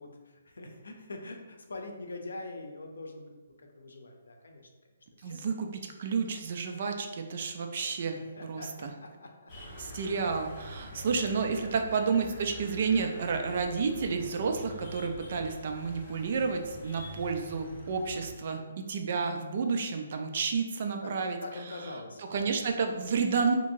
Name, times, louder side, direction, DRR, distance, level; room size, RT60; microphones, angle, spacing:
voice 1, 0.0-4.7 5.2-5.4 8.4-9.5 11.6-11.8 21.0-22.5, left 2 dB, 85° left, 3 dB, 0.5 m, -44 dB
voice 2, 5.2-8.9 9.8-21.4 22.3-23.5, right 5 dB, 50° right, 4 dB, 0.4 m, -31 dB
sound 1, 9.5-18.3, left 1 dB, 20° left, 1.2 m, -45 dB
2.8 x 2.7 x 2.5 m, 1.3 s
hypercardioid pair, 160°, 0 cm